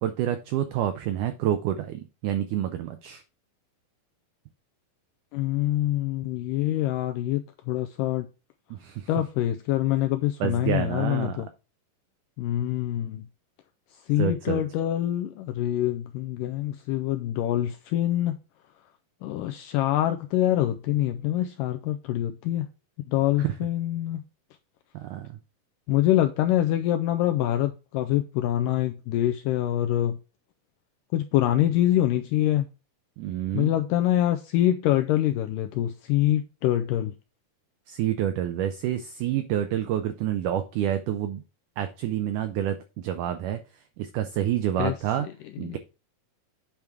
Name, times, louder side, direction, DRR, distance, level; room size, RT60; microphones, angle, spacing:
voice 1, 0.0-3.2 8.7-9.1 10.4-11.4 14.2-14.6 23.4-23.5 25.0-25.3 33.2-33.7 37.9-41.4 41.8-43.6 44.0-45.3 45.6-45.8, right 11 dB, 90° right, 1.8 m, -28 dB
voice 2, 5.3-7.4 7.7-8.3 9.1-11.5 12.4-13.2 14.1-18.4 19.2-22.7 23.1-24.2 25.9-30.2 31.1-32.7 33.5-37.1 44.8-44.9 45.2-45.8, left 13 dB, 85° left, 1.9 m, -25 dB
8.8 x 3.5 x 4.6 m
omnidirectional pair, 4.3 m